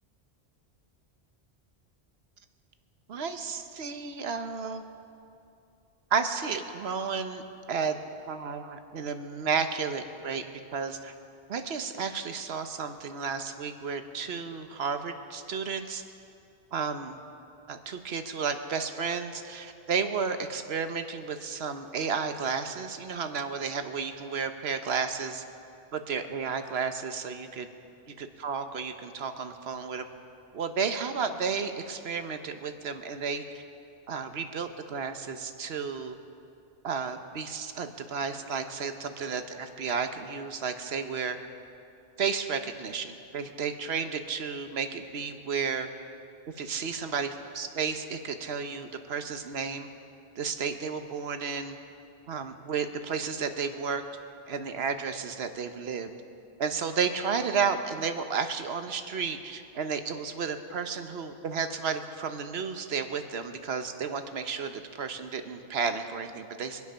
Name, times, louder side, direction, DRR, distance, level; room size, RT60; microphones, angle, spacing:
voice 1, 3.1-4.8 6.1-7.4 7.7-8.0 8.3-10.4 10.7-11.1 11.5-16.0 16.7-17.2 17.7-25.4 25.9-27.7 28.2-30.0 30.5-33.6 34.1-36.2 36.8-41.4 42.2-45.9 46.6-49.9 50.4-51.8 52.3-54.0 54.5-56.1 56.6-66.8, right 6 dB, 70° right, 8 dB, 1.1 m, -32 dB
24.0 x 8.3 x 5.6 m, 2.6 s
omnidirectional pair, 1.1 m